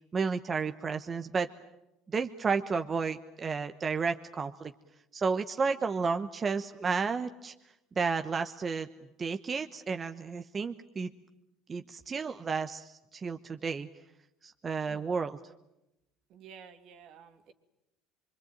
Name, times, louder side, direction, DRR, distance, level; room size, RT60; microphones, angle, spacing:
voice 1, 0.1-1.5 2.1-4.7 5.1-7.5 8.0-8.9 9.2-11.1 11.7-13.9 14.4-15.4, right 5 dB, 30° right, 7 dB, 1.0 m, -32 dB
voice 2, 16.3-17.5, right 7 dB, 60° right, 7 dB, 2.7 m, -52 dB
25.0 x 24.0 x 9.1 m, 0.89 s
supercardioid pair, 105°, 0 cm